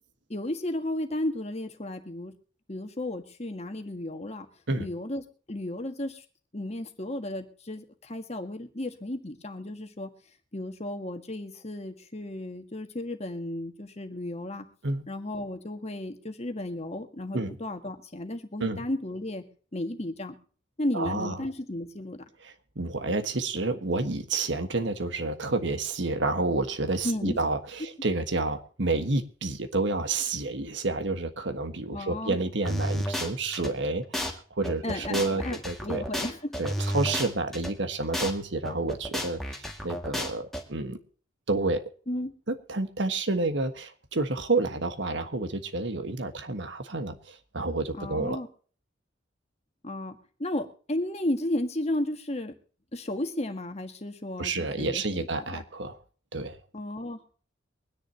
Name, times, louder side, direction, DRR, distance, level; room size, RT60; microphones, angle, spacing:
voice 1, 0.3-2.3 2.7-4.5 4.8-6.2 6.5-10.1 10.5-14.7 15.1-19.4 19.7-20.4 20.8-22.2 27.0-27.4 31.9-32.4 34.8-36.5 42.1-42.3 48.0-48.5 49.8-52.5 52.9-55.6 56.7-57.2, left 1 dB, 35° left, 1.7 m, -34 dB
voice 2, 20.9-21.3 22.4-34.2 34.6-36.0 36.6-41.0 41.5-41.8 42.5-48.4 54.4-56.0 56.3-56.6, right 2 dB, 65° right, 1.4 m, -29 dB
sound 1, 32.6-33.7 34.1-34.3 34.6-37.7 38.1-38.3 38.6-40.6, equal, ahead, 1.9 m, -31 dB
24.0 x 10.0 x 2.8 m
head